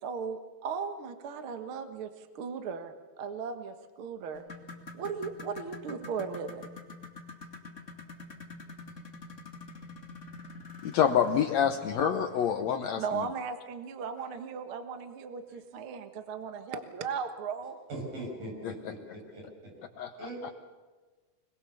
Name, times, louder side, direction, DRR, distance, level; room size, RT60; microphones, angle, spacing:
voice 1, 0.0-4.4 4.9-6.7 13.0-17.8, right 6 dB, 50° right, 7 dB, 1.7 m, -37 dB
sound 1, 4.3-12.8 14.2-14.3 14.8-14.9 15.5-15.6, left 3 dB, 25° left, 2.1 m, -47 dB
voice 2, 10.8-13.3 18.6-18.7 20.0-20.3, left 8 dB, 70° left, 8 dB, 1.7 m, -27 dB
voice 3, 17.9-19.7 20.2-20.5, right 1 dB, 80° right, 0 dB, 8.4 m, -41 dB
26.0 x 21.0 x 7.0 m, 1.3 s
omnidirectional pair, 3.9 m